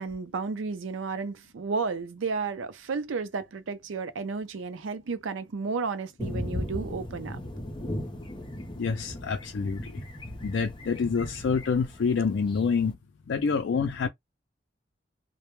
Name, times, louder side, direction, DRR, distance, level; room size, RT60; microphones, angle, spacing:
voice 1, 0.0-7.4, right 4 dB, 90° right, 0.5 m, -32 dB
sound 1, 6.2-12.9, left 1 dB, 25° left, 0.5 m, -37 dB
voice 2, 8.8-10.0 10.4-13.0 13.3-14.1, left 5 dB, 75° left, 0.4 m, -27 dB
2.1 x 2.1 x 3.0 m
head